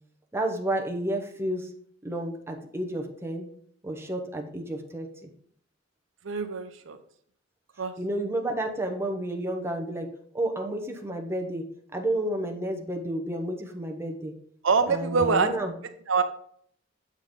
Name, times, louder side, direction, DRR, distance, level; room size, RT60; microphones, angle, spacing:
voice 1, 0.3-1.7 2.0-3.5 3.8-5.3 8.0-10.1 10.3-11.6 11.9-14.3 14.9-15.7, right 1 dB, 15° right, 2 dB, 0.8 m, -31 dB
voice 2, 6.2-7.0 7.8-7.9 14.6-15.5 16.1-16.2, right 5 dB, 75° right, 9 dB, 0.6 m, -24 dB
7.4 x 3.8 x 5.0 m, 0.63 s
head